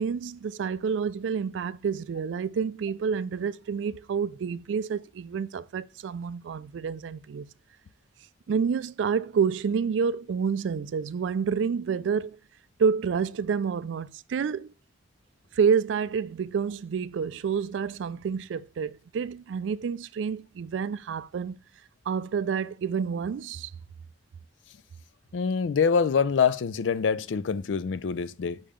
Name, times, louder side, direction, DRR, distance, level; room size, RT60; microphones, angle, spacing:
voice 1, 0.0-7.5 8.5-12.4 12.8-14.7 15.5-21.6 22.1-23.7, right 6 dB, 80° right, 0.3 m, -28 dB
voice 2, 25.3-28.6, left 6 dB, 80° left, 0.4 m, -25 dB
5.6 x 3.6 x 5.0 m
head